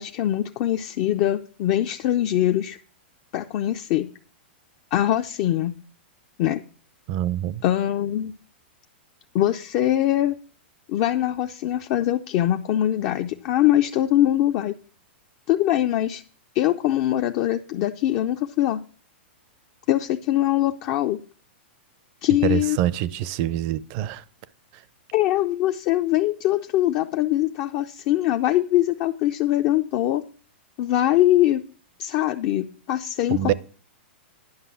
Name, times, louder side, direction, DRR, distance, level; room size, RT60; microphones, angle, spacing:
voice 1, 0.0-2.8 3.3-4.1 4.9-5.7 6.4-6.6 7.6-8.3 9.3-10.4 10.9-14.7 15.5-16.2 16.5-18.8 19.9-21.2 22.2-22.8 25.1-30.2 30.8-31.6 32.0-33.5, left 13 dB, 45° left, 0.5 m, -22 dB
voice 2, 7.1-7.6 22.4-24.2 33.3-33.5, right 12 dB, 45° right, 0.5 m, -25 dB
10.5 x 5.4 x 5.9 m
hypercardioid pair, 130°, 6 cm